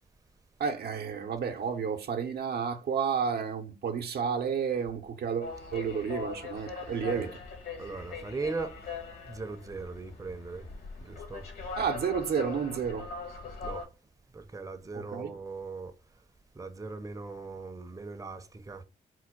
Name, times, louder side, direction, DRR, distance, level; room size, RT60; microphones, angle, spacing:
voice 1, 0.6-7.3 11.8-13.1 14.9-15.4, right 6 dB, 65° right, 0.8 m, -31 dB
sound 1, 5.4-13.9, left 4 dB, 65° left, 1.8 m, -41 dB
voice 2, 7.8-8.8 9.3-10.7 11.0-11.4 13.6-13.8 14.3-15.9 16.6-18.8, right 3 dB, 20° right, 0.7 m, -39 dB
4.5 x 2.2 x 4.4 m
cardioid pair, 70°, 17 cm